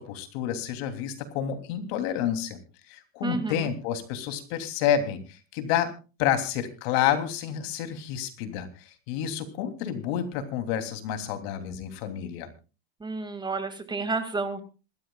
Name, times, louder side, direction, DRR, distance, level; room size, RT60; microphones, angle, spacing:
voice 1, 0.0-2.6 2.9-5.9 6.2-12.5, left 9 dB, 70° left, 7 dB, 3.1 m, -29 dB
voice 2, 3.2-3.7 13.0-14.6, right 3 dB, 15° right, 8 dB, 2.2 m, -31 dB
26.5 x 13.0 x 2.4 m, 0.32 s
supercardioid pair, 130°, 32 cm